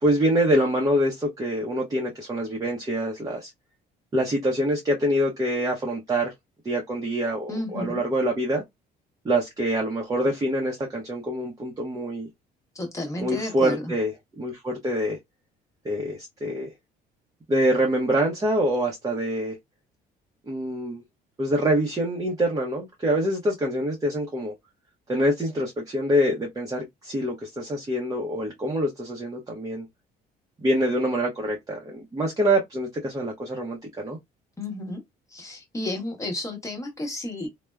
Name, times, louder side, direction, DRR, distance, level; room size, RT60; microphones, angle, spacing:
voice 1, 0.0-3.5 4.1-6.3 6.6-8.6 9.2-12.3 13.2-15.2 15.8-16.7 17.5-19.6 20.5-21.0 21.4-24.5 25.1-29.9 30.6-34.2, right 1 dB, 20° right, 0.7 m, -25 dB
voice 2, 7.5-8.0 12.7-13.9 34.6-35.0 35.3-37.5, left 1 dB, 20° left, 0.9 m, -32 dB
3.4 x 2.1 x 2.2 m
cardioid pair, 110°, 17 cm